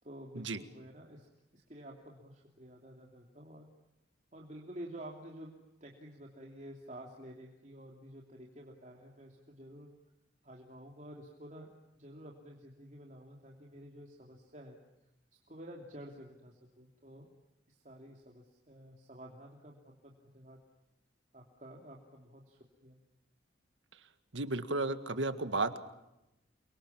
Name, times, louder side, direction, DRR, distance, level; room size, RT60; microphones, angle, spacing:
voice 1, 0.0-3.7 4.3-9.9 10.4-14.8 15.5-17.3 17.7-20.6 21.3-23.0, right 1 dB, 40° right, 0 dB, 3.0 m, -51 dB
voice 2, 24.3-25.8, right 2 dB, 80° right, 10 dB, 1.9 m, -33 dB
29.5 x 23.5 x 7.4 m, 0.92 s
head